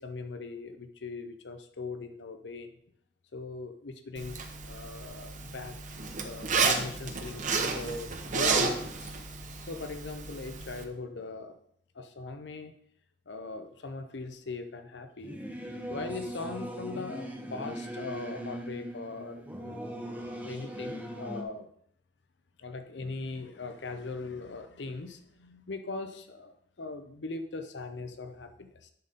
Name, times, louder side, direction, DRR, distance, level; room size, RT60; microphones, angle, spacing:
voice 1, 0.0-2.7 3.3-4.4 4.7-5.8 6.2-9.1 9.7-11.6 11.9-12.7 13.3-15.5 15.9-19.9 20.4-21.7 22.6-28.9, left 3 dB, 85° left, 8 dB, 0.7 m, -40 dB
Zipper (clothing), 4.2-10.8, right 4 dB, 45° right, 0.9 m, -32 dB
Singing / Musical instrument, 15.2-21.4, equal, 10° right, 0.9 m, -39 dB
10.5 x 4.2 x 5.2 m, 0.68 s
head